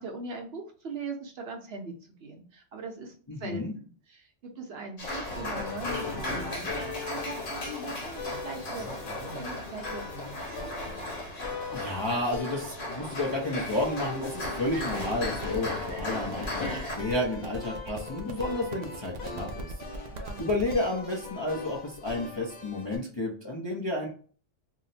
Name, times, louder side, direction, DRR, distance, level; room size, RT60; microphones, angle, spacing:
voice 1, 0.0-1.9 2.2-3.1 3.4-8.9 9.2-10.0 10.4-10.8 20.1-20.4, right 3 dB, 60° right, 2 dB, 0.8 m, -40 dB
voice 2, 3.3-3.7 11.7-20.1 20.4-24.1, left 1 dB, 35° left, -3 dB, 0.5 m, -31 dB
sound 1, 5.0-17.0, left 2 dB, 90° left, 1.2 m, -36 dB
sound 2, 5.0-23.0, left 4 dB, 60° left, 1.0 m, -41 dB
sound 3, 14.4-20.8, right 3 dB, 85° right, 0.3 m, -41 dB
2.7 x 2.1 x 3.9 m, 0.42 s
omnidirectional pair, 1.3 m